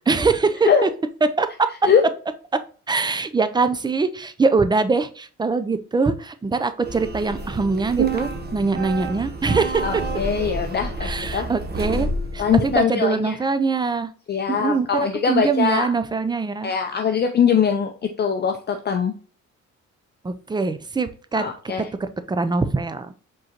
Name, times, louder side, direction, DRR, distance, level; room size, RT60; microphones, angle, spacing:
voice 1, 0.1-0.9 1.2-1.9 2.5-2.6 2.9-10.0 11.0-12.1 12.3-14.1 14.5-16.7 20.2-21.7 22.0-23.1, right 4 dB, 15° right, 11 dB, 0.4 m, -23 dB
sound 1, 6.8-12.8, right 3 dB, 35° right, 1.0 m, -29 dB
voice 2, 9.8-11.5 12.4-13.3 14.3-15.9 16.6-19.1 21.3-21.8, left 7 dB, 35° left, 5 dB, 0.5 m, -22 dB
4.9 x 3.9 x 2.9 m, 0.40 s
cardioid pair, 90°, 30 cm